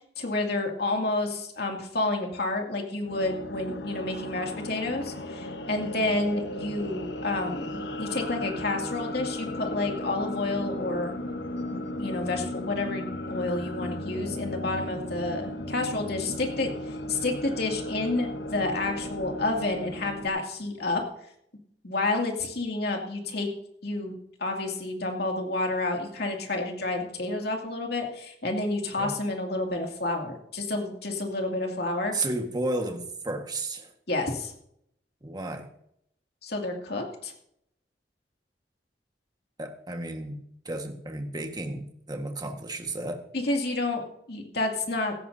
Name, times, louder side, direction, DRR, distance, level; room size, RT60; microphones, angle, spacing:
voice 1, 0.2-11.1 11.7-21.0 21.8-23.5 23.8-24.1 24.4-32.1 34.1-34.5 36.4-37.3 43.3-44.0 44.3-45.1, left 2 dB, 65° left, 1 dB, 2.4 m, -30 dB
sound 1, 3.0-20.3, left 1 dB, 85° left, 1.2 m, -36 dB
voice 2, 32.1-33.9 35.2-35.7 39.6-40.4 40.6-43.2, right 2 dB, 25° right, 4 dB, 1.5 m, -33 dB
16.5 x 14.0 x 2.7 m, 0.72 s
head